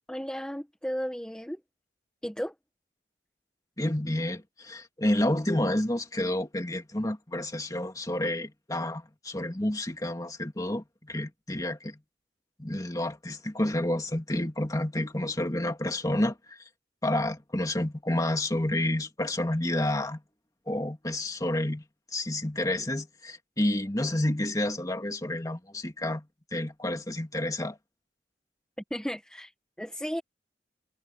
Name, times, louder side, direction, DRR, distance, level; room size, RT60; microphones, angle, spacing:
voice 1, 0.1-1.6 2.2-2.5 28.9-30.2, equal, 5° left, 1.6 m, -34 dB
voice 2, 3.8-12.0 12.6-16.6 17.0-20.2 20.7-21.9 22.1-27.8, left 1 dB, 20° left, 2.2 m, -29 dB
head